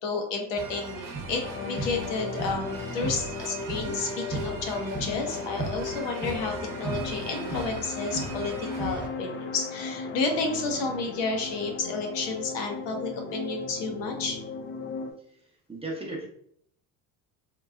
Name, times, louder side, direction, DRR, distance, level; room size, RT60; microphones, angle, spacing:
voice 1, 0.0-14.4, left 3 dB, 65° left, 3 dB, 0.9 m, -31 dB
sound 1, 0.6-9.1, right 3 dB, 45° right, 0.9 m, -37 dB
sound 2, 1.4-15.1, left 4 dB, 30° left, 0.4 m, -36 dB
voice 2, 15.7-16.3, right 2 dB, 15° right, -2 dB, 0.7 m, -34 dB
3.0 x 2.3 x 2.3 m, 0.66 s
supercardioid pair, 75°, 46 cm